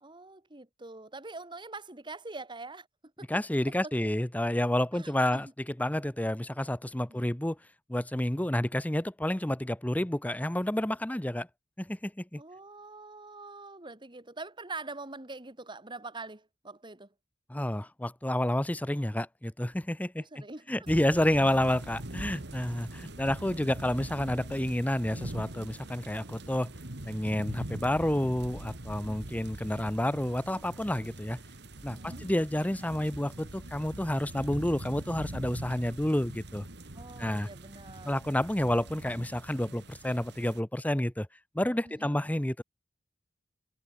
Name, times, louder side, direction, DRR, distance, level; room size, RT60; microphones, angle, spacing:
voice 1, 0.0-2.9 3.2-3.3 3.8-3.9 4.9-5.4 7.1-7.4 12.4-17.1 20.2-20.7 29.1-29.2 31.9-32.3 36.9-38.2 41.8-42.2, right 3 dB, 25° right, 2.5 m, -44 dB
voice 2, 3.3-7.6 7.9-11.5 11.8-12.4 17.5-20.4 20.7-26.7 27.1-31.4 31.8-36.7 37.2-37.5 38.0-41.3 41.5-42.6, left 1 dB, 10° left, 0.8 m, -30 dB
sound 1, 20.9-40.6, right 1 dB, 65° right, 2.7 m, -43 dB
head